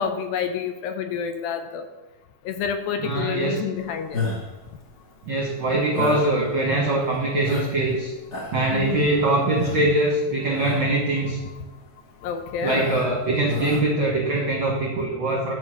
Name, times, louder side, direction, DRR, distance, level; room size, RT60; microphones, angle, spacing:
voice 1, 0.0-1.8 2.5-4.2 8.7-9.1 12.2-12.8, left 7 dB, 80° left, 7 dB, 2.4 m, -28 dB
voice 2, 3.0-3.6 5.3-8.1 8.5-11.4 12.6-15.5, right 2 dB, 55° right, -3 dB, 1.4 m, -23 dB
sound 1, 4.1-4.6 5.9-6.3 6.9-7.0 7.4-7.9 8.2-8.7 9.6-9.9 10.5-10.9 11.4-11.6 12.6-13.2 13.5-13.9, left 3 dB, 45° left, 0.8 m, -30 dB
11.0 x 4.6 x 6.3 m, 1.1 s
omnidirectional pair, 4.4 m